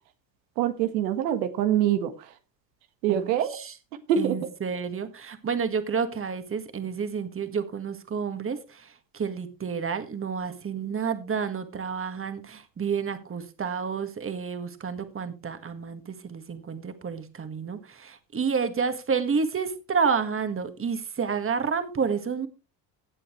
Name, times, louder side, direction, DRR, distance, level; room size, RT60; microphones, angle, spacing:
voice 1, 0.6-2.3 3.0-3.6 4.1-4.4, right 10 dB, 85° right, 1.5 m, -25 dB
voice 2, 3.1-3.7 4.2-22.5, right 6 dB, 25° right, 1.9 m, -30 dB
17.0 x 7.7 x 3.2 m
supercardioid pair, 85°, 50 cm